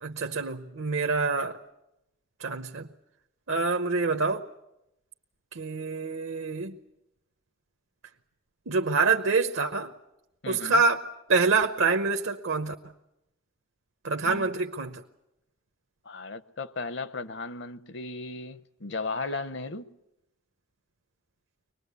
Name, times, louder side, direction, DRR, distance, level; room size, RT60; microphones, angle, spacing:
voice 1, 0.0-1.6 2.4-2.9 3.5-4.5 5.5-6.8 8.7-9.9 10.5-12.7 14.0-15.0, right 4 dB, 70° right, 0.9 m, -26 dB
voice 2, 10.4-10.8 14.2-14.5 16.1-19.9, left 3 dB, 55° left, 0.8 m, -36 dB
24.0 x 20.0 x 8.2 m
head